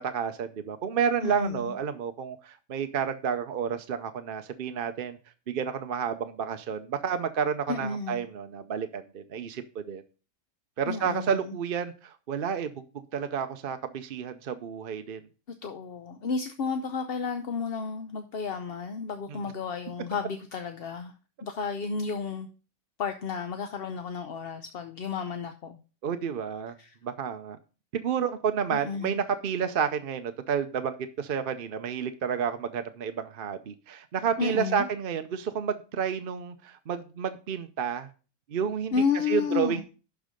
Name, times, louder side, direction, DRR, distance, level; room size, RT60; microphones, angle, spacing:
voice 1, 0.0-5.2 5.5-10.0 10.8-12.8 13.1-15.2 19.3-19.4 26.0-26.8 27.0-27.6 27.9-38.1 38.5-38.9 39.3-39.8, right 7 dB, 50° right, 0.7 m, -30 dB
voice 2, 1.2-1.7 7.7-8.2 10.9-11.5 15.6-21.1 21.4-22.5 23.0-25.8 26.8-27.0 28.7-29.2 34.4-34.9 38.9-39.8, left 5 dB, 50° left, 0.7 m, -32 dB
11.5 x 4.7 x 5.1 m
omnidirectional pair, 1.6 m